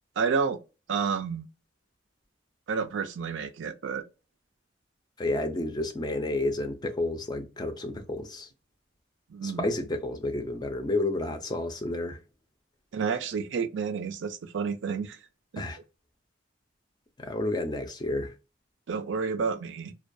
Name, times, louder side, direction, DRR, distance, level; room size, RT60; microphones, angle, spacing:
voice 1, 0.2-0.6 0.9-1.5 2.7-4.0 9.3-9.7 12.9-15.2 15.5-15.6 18.9-19.9, right 5 dB, 80° right, 0.4 m, -30 dB
voice 2, 5.2-8.5 9.4-12.2 15.6-15.8 17.2-18.3, left 2 dB, 20° left, 0.4 m, -30 dB
2.2 x 2.2 x 2.6 m
head